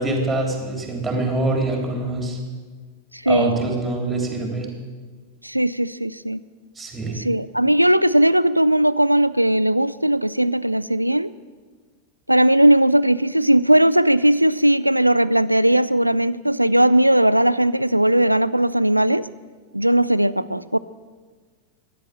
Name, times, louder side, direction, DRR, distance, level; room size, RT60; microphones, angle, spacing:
voice 1, 0.0-2.4 3.3-4.7 6.8-7.2, right 2 dB, 10° right, 1 dB, 3.5 m, -24 dB
voice 2, 3.1-3.6 5.4-6.4 7.1-11.3 12.3-19.3 19.7-20.8, right 1 dB, 90° right, 17 dB, 0.4 m, -18 dB
13.5 x 10.0 x 7.5 m, 1.5 s
figure-of-eight pair, 90°, 0 cm